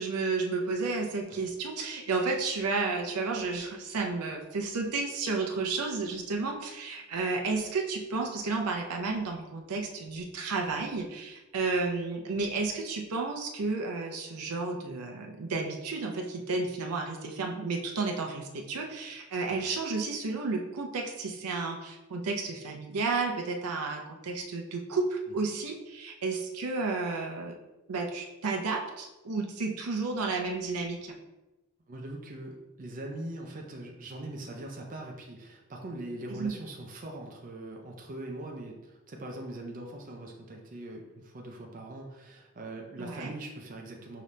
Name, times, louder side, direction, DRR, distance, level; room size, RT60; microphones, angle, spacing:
voice 1, 0.0-27.5 27.9-31.1 36.3-36.5 43.0-43.3, right 3 dB, 85° right, 2 dB, 0.6 m, -32 dB
voice 2, 31.9-44.2, right 1 dB, 35° right, 1 dB, 0.5 m, -41 dB
5.0 x 2.8 x 3.2 m, 1.0 s
head